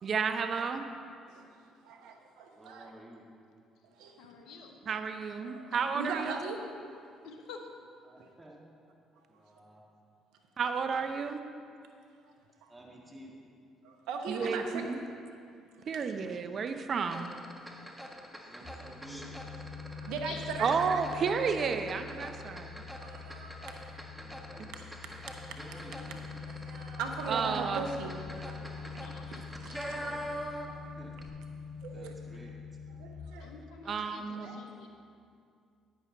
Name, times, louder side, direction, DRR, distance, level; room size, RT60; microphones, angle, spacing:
voice 1, 0.0-0.9 4.9-6.4 10.6-11.4 14.3-15.0 15.9-17.4 20.6-22.8 24.6-24.7 27.3-27.8 33.9-34.5, right 5 dB, 50° right, 8 dB, 0.6 m, -32 dB
voice 2, 1.8-2.9 3.9-4.2 5.4-6.7 8.2-8.3 12.6-12.7 13.8-14.8 15.8-16.0 17.7-17.9 18.6-18.7 20.0-20.7 23.0-24.1 26.5-29.0 29.6-29.9 30.7-30.8 31.8-32.1 33.0-33.5 34.4-34.6, right 4 dB, 75° right, 3 dB, 1.0 m, -40 dB
voice 3, 2.5-3.3 8.0-8.6 9.3-9.8 12.7-13.6 18.5-19.6 24.1-24.8 25.5-26.3 29.8-30.3 30.8-31.2 31.9-32.6, right 1 dB, 20° right, -2 dB, 1.8 m, -52 dB
voice 4, 4.1-4.8 5.5-5.6 6.0-6.2 7.2-7.7 14.4-14.7 20.2-20.8 25.7-26.2 28.8-29.4 33.4-34.9, left 4 dB, 70° left, 4 dB, 1.0 m, -49 dB
sound 1, 17.1-30.9 31.1-31.3, equal, ahead, 1.5 m, -44 dB
sound 2, 18.6-33.2, left 5 dB, 50° left, 2.5 m, -45 dB
10.5 x 9.8 x 4.0 m, 2.4 s
hypercardioid pair, 55°, 0 cm